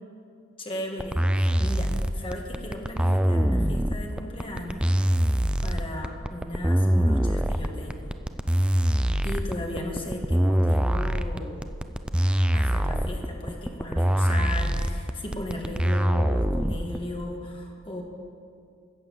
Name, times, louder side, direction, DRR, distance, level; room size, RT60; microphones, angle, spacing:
voice 1, 0.6-8.1 8.7-9.0 9.2-11.6 12.5-18.0, left 1 dB, 25° left, 0 dB, 1.7 m, -36 dB
sound 1, 1.0-17.0, right 1 dB, 5° right, 0.3 m, -23 dB
14.0 x 8.5 x 7.1 m, 2.3 s
head